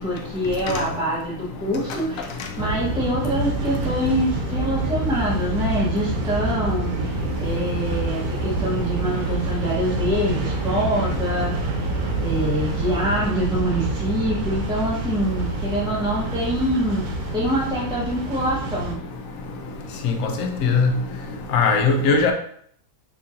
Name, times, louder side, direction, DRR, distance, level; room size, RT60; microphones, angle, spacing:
voice 1, 0.0-2.3 2.6-11.9 12.2-17.1 17.3-19.0, equal, 5° right, -7 dB, 0.6 m, -25 dB
sound 1, 2.6-18.9, right 2 dB, 85° right, 1.1 m, -27 dB
voice 2, 20.4-20.9 21.5-22.3, left 4 dB, 70° left, 4 dB, 0.9 m, -18 dB
4.1 x 2.9 x 2.4 m, 0.63 s
omnidirectional pair, 1.6 m